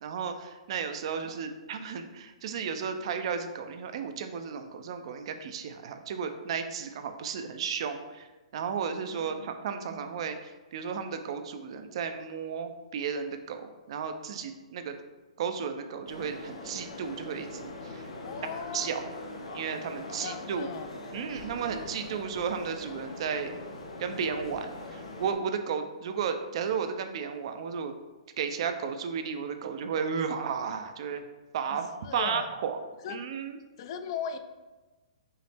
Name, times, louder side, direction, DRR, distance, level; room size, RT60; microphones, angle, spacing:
voice 1, 0.0-14.9 15.4-18.1 18.7-19.1 19.5-20.7 21.1-23.5 24.0-27.9 28.4-31.2 31.5-32.8 33.1-33.6, right 6 dB, 60° right, 7 dB, 0.4 m, -34 dB
voice 2, 9.1-9.5 18.2-18.9 20.2-20.9 31.7-32.5 33.0-33.3 33.8-34.4, left 7 dB, 50° left, 9 dB, 0.4 m, -38 dB
sound 1, 16.1-25.3, left 2 dB, 85° left, 0.8 m, -42 dB
5.5 x 2.0 x 3.3 m, 1.2 s
hypercardioid pair, 140°, 3 cm